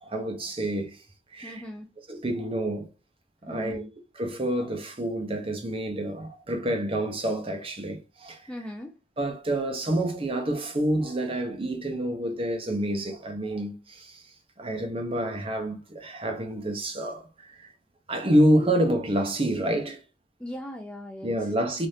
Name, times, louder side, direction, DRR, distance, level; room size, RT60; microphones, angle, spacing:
voice 1, 0.0-1.0 1.3-1.6 2.1-2.9 3.4-3.9 4.2-8.4 9.2-14.2 14.6-17.7 18.1-20.0 21.2-21.9, right 1 dB, 30° right, 0.7 m, -28 dB
voice 2, 1.4-1.9 3.5-3.9 8.5-8.9 20.4-21.5, left 1 dB, 5° left, 0.4 m, -39 dB
3.4 x 2.5 x 2.6 m
head